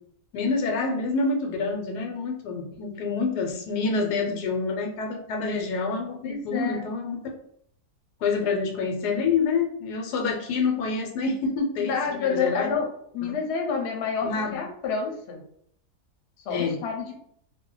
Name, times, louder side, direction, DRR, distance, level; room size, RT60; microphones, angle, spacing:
voice 1, 0.3-7.2 8.2-12.7 13.2-13.3 14.2-14.6 16.5-16.8, left 4 dB, 90° left, 2 dB, 1.2 m, -27 dB
voice 2, 6.2-6.8 8.4-8.5 11.8-12.9 13.1-15.4 16.4-17.1, left 5 dB, 55° left, 1 dB, 0.8 m, -29 dB
2.7 x 2.1 x 3.7 m, 0.68 s
omnidirectional pair, 1.7 m